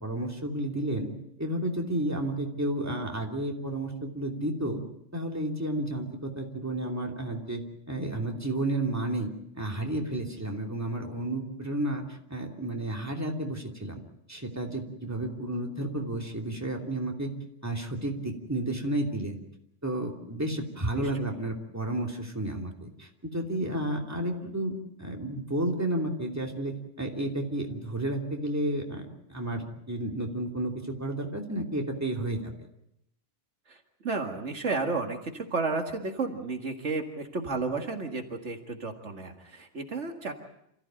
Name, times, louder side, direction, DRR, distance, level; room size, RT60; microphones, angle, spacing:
voice 1, 0.0-1.1 1.4-4.8 5.1-7.6 7.9-9.3 9.6-14.0 14.3-17.3 17.6-19.4 19.8-30.7 31.0-32.5, right 1 dB, 10° right, 1 dB, 2.9 m, -32 dB
voice 2, 33.7-40.3, right 3 dB, 70° right, 4 dB, 2.2 m, -32 dB
28.0 x 15.0 x 8.9 m, 0.78 s
omnidirectional pair, 1.3 m